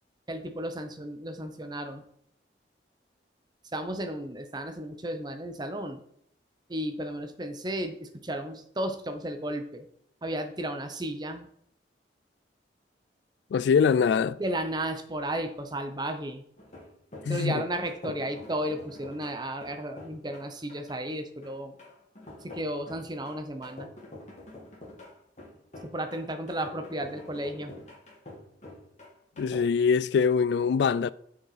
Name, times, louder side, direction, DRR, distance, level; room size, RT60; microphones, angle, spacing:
voice 1, 0.3-2.0 3.7-6.0 6.7-9.9 10.2-11.5 14.4-16.4 17.3-21.7 22.4-23.9 25.8-27.7, right 1 dB, 25° right, 0.9 m, -34 dB
voice 2, 13.5-14.4 17.2-17.6 29.4-31.1, left 6 dB, 70° left, 0.3 m, -23 dB
sound 1, 16.6-29.6, left 1 dB, 40° left, 3.0 m, -47 dB
7.0 x 6.4 x 4.9 m
head